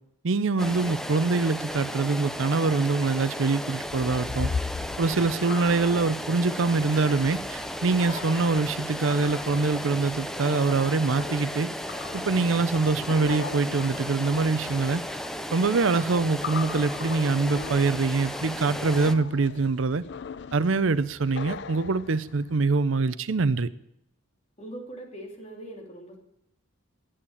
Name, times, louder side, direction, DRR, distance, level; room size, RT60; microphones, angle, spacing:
voice 1, 0.2-4.5 5.0-11.7 12.1-15.0 15.5-20.0 20.5-23.7, right 3 dB, 70° right, 15 dB, 0.6 m, -24 dB
sound 1, 0.6-19.1, equal, ahead, 0.6 m, -35 dB
sound 2, 3.8-22.6, left 5 dB, 60° left, 0.5 m, -40 dB
voice 2, 24.6-26.2, right 1 dB, 30° left, 1 dB, 3.1 m, -41 dB
11.5 x 8.8 x 9.7 m, 0.79 s
head